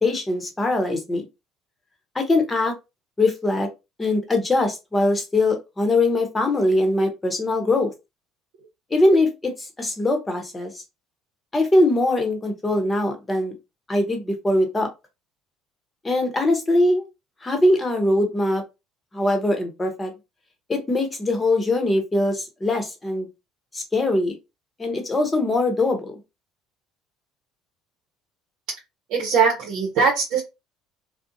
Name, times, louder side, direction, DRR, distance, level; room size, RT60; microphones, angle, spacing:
voice 1, 0.0-1.2 2.1-2.7 3.2-3.7 4.0-7.9 8.9-10.7 11.5-13.5 13.9-14.9 16.0-17.0 17.4-18.6 19.1-20.1 20.7-23.3 23.7-24.3 24.8-26.1, left 2 dB, 20° left, 4 dB, 0.9 m, -22 dB
voice 2, 29.1-30.4, right 5 dB, 70° right, -1 dB, 0.8 m, -20 dB
2.5 x 2.1 x 2.6 m, 0.24 s
supercardioid pair, 90°, 0 cm